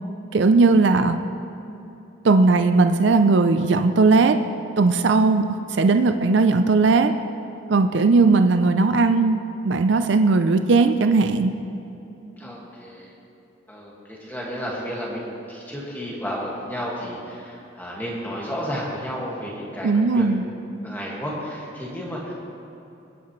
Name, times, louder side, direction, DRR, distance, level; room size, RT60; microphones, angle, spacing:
voice 1, 0.3-1.2 2.2-4.4 4.8-7.1 7.7-9.4 9.6-11.5 19.8-20.4, right 3 dB, 70° right, 8 dB, 0.5 m, -18 dB
voice 2, 12.4-13.1 13.7-15.2 15.5-20.2 20.8-22.3, equal, 10° left, -4 dB, 1.9 m, -32 dB
21.0 x 9.8 x 3.2 m, 2.9 s
head